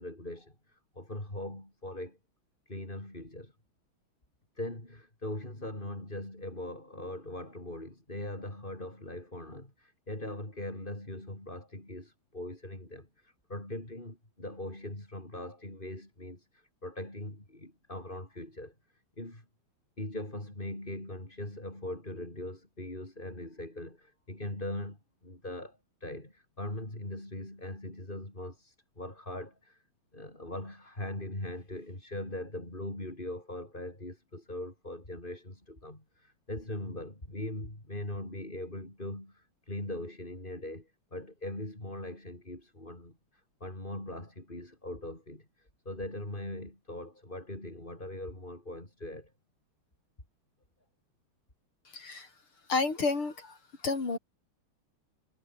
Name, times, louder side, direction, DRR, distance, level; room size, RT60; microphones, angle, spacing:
voice 1, 0.0-2.2 2.7-3.5 4.6-18.7 19.2-19.4 20.0-25.0 25.2-29.8 30.1-49.3, left 1 dB, 20° left, 6.5 m, -41 dB
voice 2, 51.9-52.3 52.7-53.6 53.8-54.2, left 4 dB, 90° left, 5.7 m, -30 dB
omnidirectional pair, 2.3 m